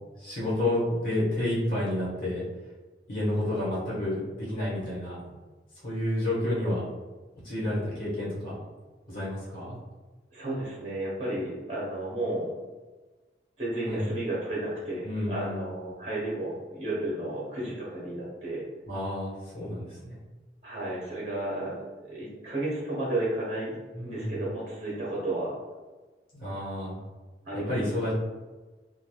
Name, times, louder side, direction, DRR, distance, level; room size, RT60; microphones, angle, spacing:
voice 1, 0.2-2.4 3.1-5.4 5.8-6.8 7.4-8.6 9.1-9.8 13.9-14.1 15.0-15.7 18.8-20.0 23.9-24.4 26.3-27.0 27.7-28.1, left 1 dB, 55° left, -8 dB, 1.3 m, -30 dB
voice 2, 10.3-12.5 13.6-18.6 20.6-21.8 22.0-23.8 24.0-25.6 27.4-27.8, right 1 dB, 40° right, -6 dB, 0.7 m, -32 dB
3.0 x 2.3 x 2.3 m, 1.3 s
head